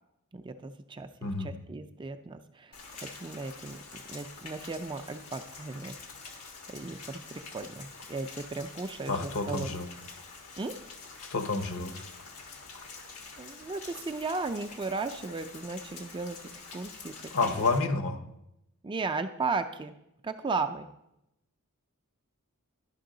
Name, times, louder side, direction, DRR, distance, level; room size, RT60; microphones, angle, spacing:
voice 1, 0.3-1.1 1.4-3.8 4.1-5.9 6.7-9.8 10.6-10.7 13.4-17.9 18.8-19.9 20.2-20.9, right 3 dB, 20° right, 9 dB, 0.4 m, -36 dB
voice 2, 1.2-1.5 9.1-9.9 11.3-12.0 17.3-18.2, left 3 dB, 65° left, 8 dB, 0.9 m, -29 dB
Rain, 2.7-17.8, left 4 dB, 85° left, 1.3 m, -46 dB
11.5 x 5.4 x 3.8 m, 0.85 s
head